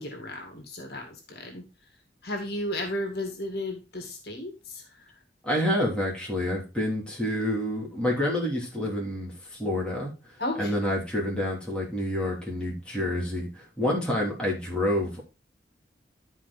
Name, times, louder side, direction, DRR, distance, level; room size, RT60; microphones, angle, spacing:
voice 1, 0.0-1.6 2.2-4.8 10.4-10.7, left 1 dB, 60° left, 3 dB, 2.0 m, -34 dB
voice 2, 5.4-10.1 10.6-15.2, left 1 dB, 5° left, -4 dB, 3.2 m, -28 dB
12.0 x 4.8 x 4.1 m, 0.30 s
head